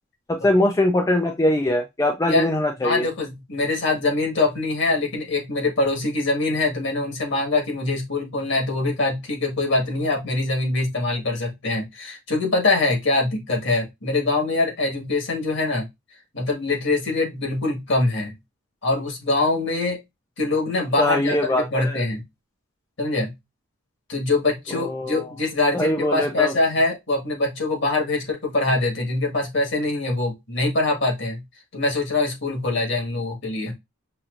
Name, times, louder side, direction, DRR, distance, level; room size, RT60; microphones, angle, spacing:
voice 1, 0.3-3.1 21.0-22.0 24.7-25.3 25.7-26.5, left 1 dB, 15° left, 0.4 m, -22 dB
voice 2, 2.8-15.9 16.3-18.3 18.8-20.0 20.4-22.2 23.0-23.3 24.1-31.4 31.7-33.7, left 2 dB, 55° left, 1.6 m, -23 dB
5.7 x 2.6 x 2.5 m
head